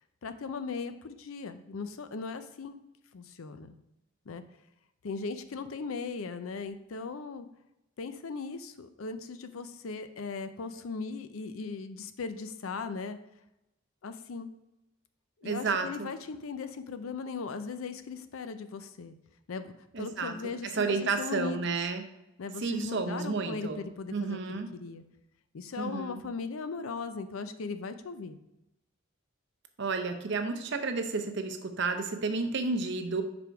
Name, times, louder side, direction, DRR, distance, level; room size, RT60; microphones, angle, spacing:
voice 1, 0.2-2.8 3.1-3.7 4.3-4.4 5.0-7.5 8.0-13.2 14.0-14.5 15.4-19.2 19.5-21.8 22.4-25.0 25.5-28.4, left 4 dB, 85° left, 10 dB, 0.5 m, -38 dB
voice 2, 15.4-16.1 19.9-20.3 20.8-22.0 22.6-23.8 24.1-24.7 25.8-26.2 29.8-33.2, right 4 dB, 60° right, 7 dB, 0.7 m, -31 dB
5.1 x 4.8 x 4.6 m, 0.90 s
head